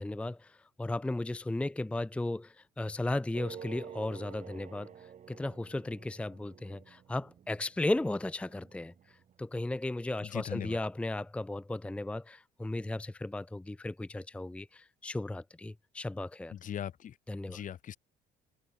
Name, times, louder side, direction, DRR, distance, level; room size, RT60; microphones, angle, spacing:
voice 1, 0.0-16.5 17.3-17.6, left 2 dB, 5° left, 0.6 m, -35 dB
sound 1, 3.3-9.5, right 8 dB, 45° right, 1.8 m, -50 dB
voice 2, 10.2-10.8 16.5-17.1 17.5-18.0, left 9 dB, 50° left, 2.2 m, -39 dB
open air
cardioid pair, 110°, 17 cm